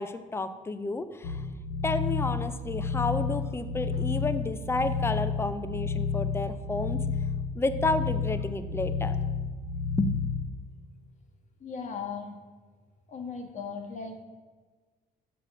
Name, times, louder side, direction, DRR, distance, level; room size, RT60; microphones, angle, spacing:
voice 1, 0.0-1.4 1.8-7.0 7.5-9.2 10.0-10.1, left 3 dB, 15° left, 11 dB, 0.5 m, -31 dB
sound 1, 1.2-10.5, left 5 dB, 70° left, 1.1 m, -31 dB
voice 2, 11.6-12.4 13.1-14.2, left 5 dB, 45° left, 5 dB, 1.2 m, -37 dB
6.1 x 5.0 x 6.0 m, 1.4 s
cardioid pair, 110°, 17 cm